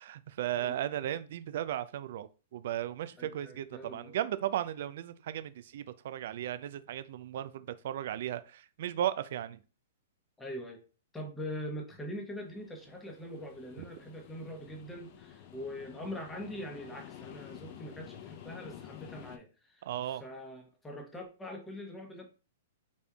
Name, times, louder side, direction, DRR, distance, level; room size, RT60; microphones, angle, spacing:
voice 1, 0.0-9.6 19.9-20.2, right 11 dB, 60° right, 0.3 m, -36 dB
voice 2, 3.2-4.2 10.4-10.8 11.1-22.2, equal, 10° left, 1.0 m, -43 dB
sound 1, 12.4-19.4, left 10 dB, 45° left, 0.6 m, -50 dB
4.1 x 3.4 x 2.3 m
hypercardioid pair, 125°, 0 cm